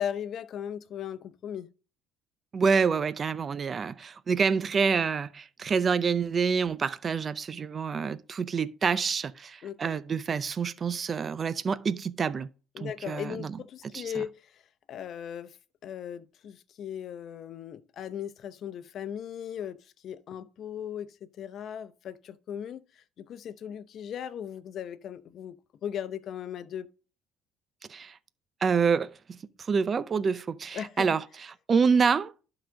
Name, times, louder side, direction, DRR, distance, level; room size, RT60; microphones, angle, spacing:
voice 1, 0.0-1.7 9.6-10.0 12.7-14.6 14.9-15.6 15.8-26.9 30.7-31.1, left 9 dB, 55° left, 0.7 m, -38 dB
voice 2, 2.5-12.5 12.8-13.6 13.9-14.2 27.9-28.1 28.6-29.4 29.7-31.2 31.7-32.3, right 5 dB, 40° right, 0.5 m, -27 dB
11.5 x 3.9 x 5.1 m
supercardioid pair, 85°, 0 cm